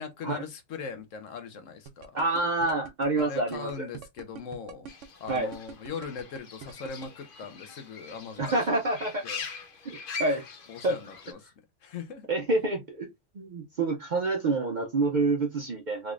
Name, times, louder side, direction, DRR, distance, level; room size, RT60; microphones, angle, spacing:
voice 1, 0.0-2.1 3.2-4.9 5.2-8.6 9.2-9.4 10.7-11.4 11.8-12.3, left 5 dB, 75° left, 1.2 m, -40 dB
sound 1, 1.9-7.1, right 7 dB, 75° right, 0.9 m, -43 dB
voice 2, 2.1-3.9 5.3-5.5 8.4-9.2 9.9-10.4 10.8-11.0 12.3-13.1 13.3-16.1, right 2 dB, 55° right, 0.5 m, -27 dB
Fowl / Bird, 4.9-11.3, left 5 dB, 50° left, 0.8 m, -42 dB
3.8 x 3.2 x 2.4 m
omnidirectional pair, 1.4 m